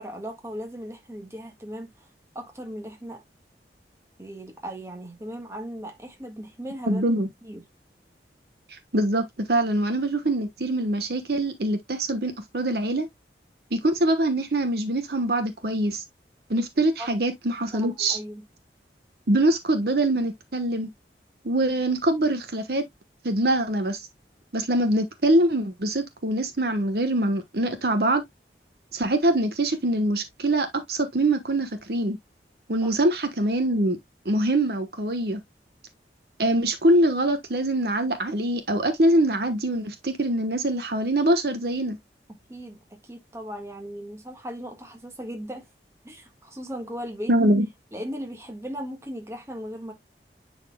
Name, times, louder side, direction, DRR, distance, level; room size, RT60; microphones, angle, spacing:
voice 1, 0.0-2.1 2.3-3.2 4.2-7.0 7.4-7.6 17.0-17.1 17.7-18.4 32.8-32.9 42.5-45.7 46.0-47.3 47.9-49.9, equal, 15° right, 1.6 m, -37 dB
voice 2, 6.9-7.3 8.7-13.1 13.7-16.0 16.5-18.2 19.3-20.9 21.4-22.9 23.2-24.1 24.5-28.2 28.9-32.2 32.7-34.0 34.2-35.4 36.4-42.0 47.3-47.7, right 1 dB, 65° right, 1.1 m, -24 dB
10.5 x 4.2 x 2.2 m
head